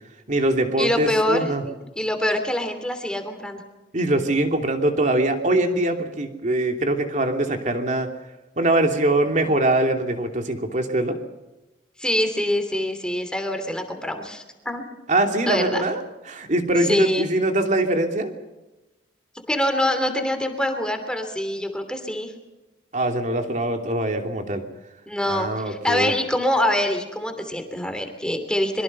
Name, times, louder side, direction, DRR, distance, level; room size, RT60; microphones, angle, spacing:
voice 1, 0.3-1.6 3.9-8.1 8.6-11.2 15.1-18.3 22.9-24.6 25.3-26.1, right 1 dB, 45° right, 4 dB, 2.9 m, -22 dB
voice 2, 0.8-3.6 12.0-14.8 15.5-15.8 16.9-17.3 19.3-22.3 25.1-28.8, left 1 dB, 5° left, 6 dB, 3.0 m, -25 dB
25.0 x 23.5 x 5.6 m, 1.0 s
head